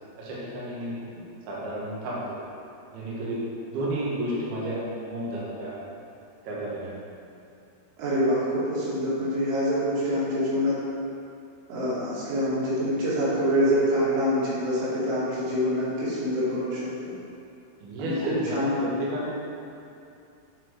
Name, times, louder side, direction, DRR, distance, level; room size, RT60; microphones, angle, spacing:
voice 1, 0.2-1.0 1.5-2.4 2.9-3.4 3.7-4.8 5.1-5.8 6.4-7.0 17.8-19.4, right 1 dB, 65° right, -7 dB, 3.0 m, -32 dB
voice 2, 8.0-10.8 11.7-17.1 18.0-18.9, equal, 90° right, -10 dB, 4.9 m, -26 dB
10.5 x 4.5 x 4.6 m, 2.6 s
omnidirectional pair, 5.5 m